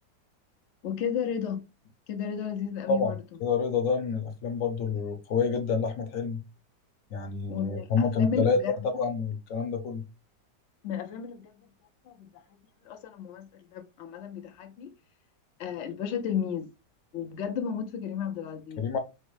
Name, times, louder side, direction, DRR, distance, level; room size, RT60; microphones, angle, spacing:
voice 1, 0.8-1.7 2.1-3.1 7.5-8.7 10.8-11.5 12.1-12.4 12.8-14.9 15.6-16.7 17.1-18.8, left 8 dB, 85° left, 0.6 m, -33 dB
voice 2, 3.4-6.4 7.1-8.6 8.9-10.0 18.8-19.0, left 5 dB, 60° left, 1.0 m, -28 dB
4.4 x 2.0 x 3.0 m
omnidirectional pair, 1.9 m